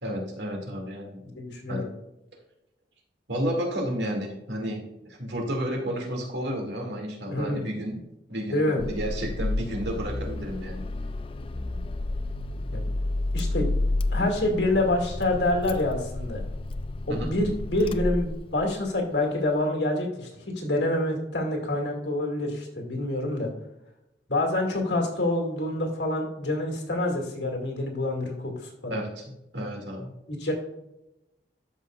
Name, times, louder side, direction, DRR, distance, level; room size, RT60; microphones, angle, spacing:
voice 1, 0.0-1.2 1.7-1.8 3.3-8.0 8.3-10.9 17.1-17.3 28.9-29.2 29.5-30.1, equal, 80° right, 0 dB, 2.4 m, -31 dB
voice 2, 1.3-1.9 7.3-7.7 8.5-8.8 12.7-12.8 13.3-13.7 14.1-16.4 17.1-20.3 20.6-23.5 24.3-29.0 30.3-30.5, left 1 dB, 85° left, 1 dB, 2.4 m, -27 dB
Car / Engine starting, 8.8-18.8, left 2 dB, 30° left, 0.4 m, -31 dB
13.0 x 5.6 x 2.4 m, 0.88 s
head